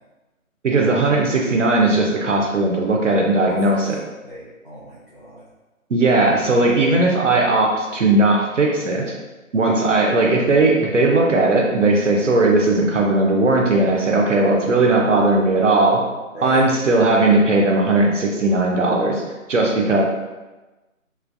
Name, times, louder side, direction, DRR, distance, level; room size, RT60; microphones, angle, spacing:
voice 1, 0.6-4.0 5.9-9.1 9.5-16.0 16.4-19.2 19.5-20.0, right 2 dB, 60° right, 0 dB, 0.7 m, -17 dB
voice 2, 3.5-5.5 16.3-16.6, right 1 dB, 35° left, -12 dB, 0.5 m, -38 dB
3.3 x 2.4 x 2.2 m, 1.1 s
figure-of-eight pair, 175°, 41 cm